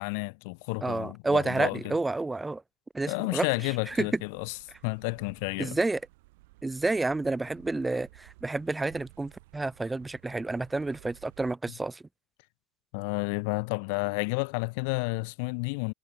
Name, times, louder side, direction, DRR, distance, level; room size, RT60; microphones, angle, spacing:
voice 1, 0.0-1.8 3.1-4.6 4.8-5.8 12.9-15.9, left 33 dB, 75° left, 0.6 m, -31 dB
voice 2, 0.8-2.6 2.9-3.5 3.9-4.1 5.6-6.0 6.6-12.0, right 2 dB, 10° right, 0.8 m, -29 dB
sound 1, 3.8-11.6, right 21 dB, 85° right, 3.1 m, -56 dB
supercardioid pair, 120°, 0 cm